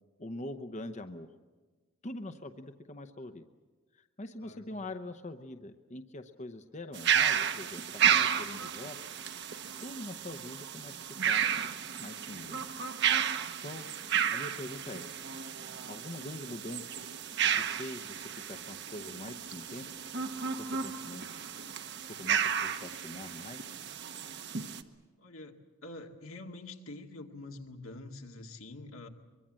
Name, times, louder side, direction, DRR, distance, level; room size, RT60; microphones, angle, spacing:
voice 1, 0.2-1.3 2.0-3.4 3.9-9.1 9.8-11.0 11.3-11.4 12.0-12.6 13.6-13.9 14.3-15.1 15.9-17.0 17.6-19.8 20.5-21.4 22.0-23.6, left 1 dB, 35° left, 8 dB, 0.8 m, -43 dB
voice 2, 4.4-4.7 25.2-25.5 25.8-29.1, left 2 dB, 80° left, 3 dB, 2.2 m, -46 dB
sound 1, 6.9-24.8, right 8 dB, 55° right, 1.1 m, -32 dB
24.0 x 23.0 x 7.6 m, 1.3 s
head